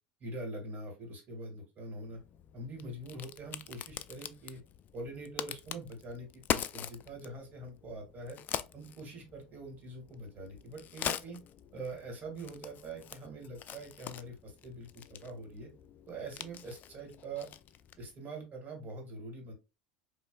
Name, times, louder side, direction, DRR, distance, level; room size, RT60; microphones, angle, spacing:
voice 1, 0.2-2.2 2.5-4.6 4.9-8.4 8.7-11.4 11.7-15.7 16.1-17.5 18.0-19.5, right 2 dB, 40° right, 2 dB, 2.0 m, -44 dB
Crack, 2.1-18.1, left 10 dB, 40° left, 0.4 m, -43 dB
4.5 x 3.0 x 2.3 m, 0.27 s
hypercardioid pair, 90°, 5 cm